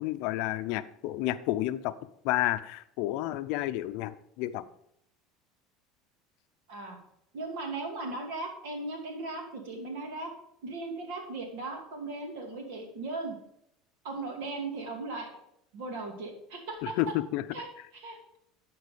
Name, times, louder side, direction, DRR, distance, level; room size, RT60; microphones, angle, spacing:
voice 1, 0.0-1.9 2.2-4.6 16.8-17.4, left 15 dB, 70° left, 13 dB, 0.5 m, -30 dB
voice 2, 7.3-10.3 10.6-13.4 14.0-15.4 15.7-16.9 17.5-17.7 17.9-18.4, right 3 dB, 80° right, 3 dB, 2.5 m, -37 dB
11.5 x 4.7 x 5.1 m, 0.74 s
supercardioid pair, 110°, 0 cm